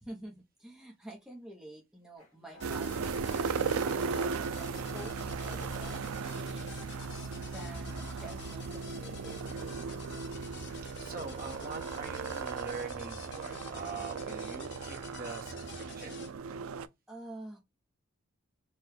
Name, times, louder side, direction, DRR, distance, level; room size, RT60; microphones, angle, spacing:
voice 1, 0.0-5.1 5.4-10.0 17.1-17.6, right 1 dB, 5° right, 0.7 m, -49 dB
sound 1, 2.2-11.6, left 2 dB, 70° left, 2.0 m, -62 dB
sound 2, 2.6-16.3, left 4 dB, 55° left, 0.7 m, -49 dB
sound 3, 2.6-16.9, right 5 dB, 80° right, 0.4 m, -37 dB
voice 2, 11.0-16.2, right 4 dB, 40° right, 1.0 m, -43 dB
4.6 x 2.3 x 3.2 m
head